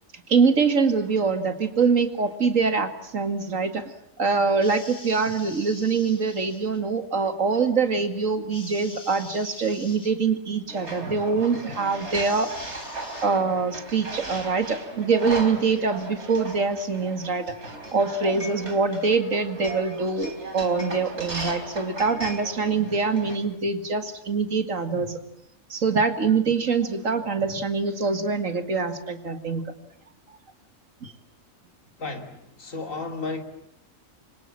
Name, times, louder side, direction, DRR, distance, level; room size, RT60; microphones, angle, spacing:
voice 1, 0.3-3.8 4.2-12.5 13.2-17.5 17.9-25.2 25.7-29.6 31.0-31.1, right 4 dB, 70° right, 8 dB, 2.5 m, -24 dB
sound 1, 4.6-6.8 8.5-10.1 12.1-13.3, left 3 dB, 40° left, 2.4 m, -44 dB
sound 2, 10.7-23.4, right 2 dB, 55° right, 4.2 m, -37 dB
voice 2, 32.0-33.4, left 3 dB, 70° left, 5 dB, 3.3 m, -33 dB
29.5 x 25.0 x 7.6 m, 0.75 s
omnidirectional pair, 1.4 m